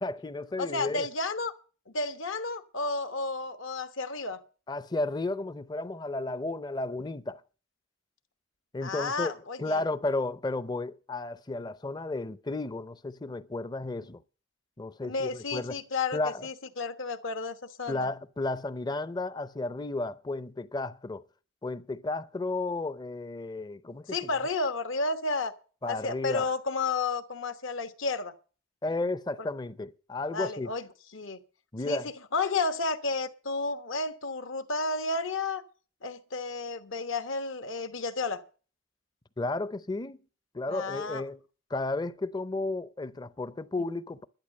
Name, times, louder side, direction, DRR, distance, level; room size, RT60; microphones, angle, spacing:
voice 1, 0.0-1.1 4.7-7.4 8.7-9.3 9.6-14.2 14.8-15.8 16.1-16.5 17.9-21.2 21.6-24.2 25.8-26.5 28.8-30.7 31.7-32.1 39.4-40.2 40.5-41.4 41.7-44.3, left 2 dB, 20° left, 0.5 m, -33 dB
voice 2, 0.6-1.5 1.9-4.4 8.8-9.9 15.0-18.1 24.1-25.5 25.9-28.3 30.3-30.9 31.1-31.4 31.9-32.0 32.3-35.6 36.0-38.4 40.7-41.2, left 3 dB, 70° left, 1.2 m, -32 dB
12.0 x 11.0 x 6.4 m
head